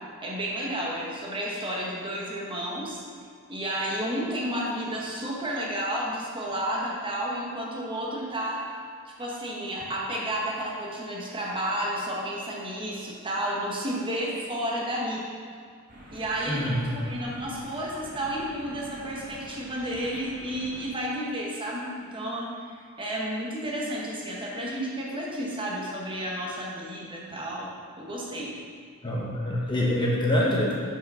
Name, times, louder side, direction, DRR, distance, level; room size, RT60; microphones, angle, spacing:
voice 1, 0.2-3.0 3.5-8.6 9.1-15.2 16.1-22.5 23.0-27.7 28.0-28.5, right 1 dB, 25° right, -4 dB, 1.2 m, -31 dB
sound 1, 15.9-20.9, right 1 dB, 40° right, 1.4 m, -46 dB
voice 2, 16.5-16.8 29.0-30.7, left 1 dB, 20° left, -4 dB, 0.8 m, -25 dB
6.0 x 5.0 x 5.6 m, 2.1 s
head